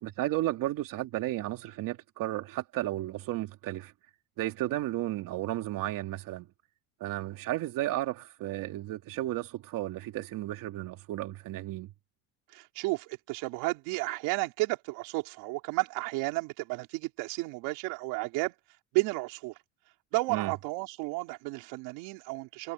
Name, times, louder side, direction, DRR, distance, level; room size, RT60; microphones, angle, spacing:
voice 1, 0.0-3.9 4.4-6.5 7.0-11.9 20.3-20.5, right 15 dB, 55° right, 2.7 m, -33 dB
voice 2, 12.5-18.5 18.9-19.5 20.1-22.7, right 23 dB, 75° right, 4.1 m, -32 dB
cardioid pair, 140°, 39 cm